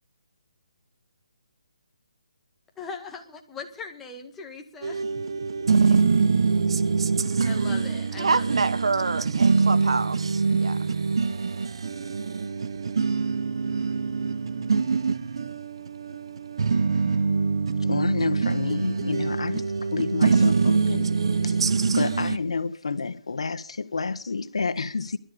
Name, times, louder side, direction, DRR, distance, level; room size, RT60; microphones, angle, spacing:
voice 1, 2.8-5.0 5.8-6.0 7.4-8.7, left 4 dB, 5° left, 1.9 m, -40 dB
sound 1, 4.8-22.4, right 5 dB, 60° right, 1.2 m, -24 dB
voice 2, 8.2-10.8, right 4 dB, 80° right, 1.6 m, -27 dB
voice 3, 17.8-19.7 19.9-21.1 21.4-21.6 21.9-25.2, left 4 dB, 80° left, 1.6 m, -29 dB
21.0 x 13.0 x 5.2 m
hypercardioid pair, 170°, 3 cm